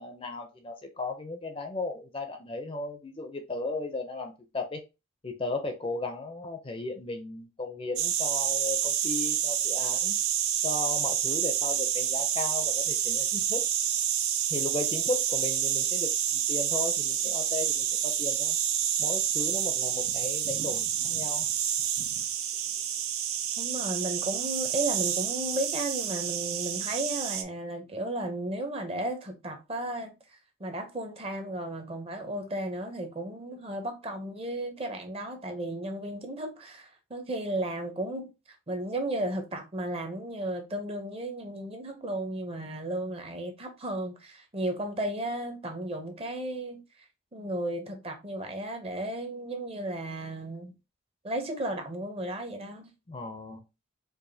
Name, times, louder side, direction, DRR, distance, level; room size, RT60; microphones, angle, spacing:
voice 1, 0.0-4.8 5.2-10.2 10.6-13.6 14.5-18.6 19.0-21.5 53.1-53.6, left 3 dB, 25° left, 0.5 m, -35 dB
sound 1, 8.0-27.4, right 9 dB, 85° right, 0.5 m, -28 dB
voice 2, 23.6-38.3 38.7-50.7 51.2-52.9, right 1 dB, 25° right, 0.6 m, -34 dB
4.7 x 2.4 x 2.7 m
head